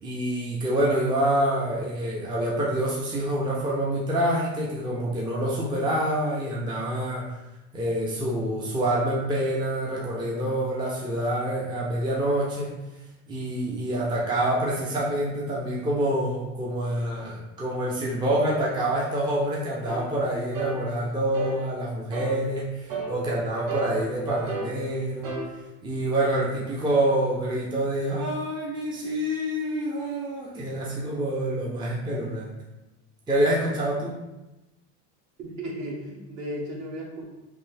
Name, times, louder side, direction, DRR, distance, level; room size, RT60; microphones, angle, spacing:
voice 1, 0.0-7.2 7.7-12.8 13.3-25.4 25.8-32.5 33.3-34.2, right 1 dB, 10° right, -4 dB, 0.5 m, -27 dB
sound 1, 19.9-20.0 20.5-20.8 21.3-21.6 22.1-22.4 22.9-23.1 23.7-24.7 25.2-25.5, right 4 dB, 65° right, 1.4 m, -32 dB
voice 2, 35.4-37.2, equal, 50° right, -2 dB, 1.1 m, -35 dB
3.2 x 2.6 x 3.3 m, 1.0 s
supercardioid pair, 115°, 39 cm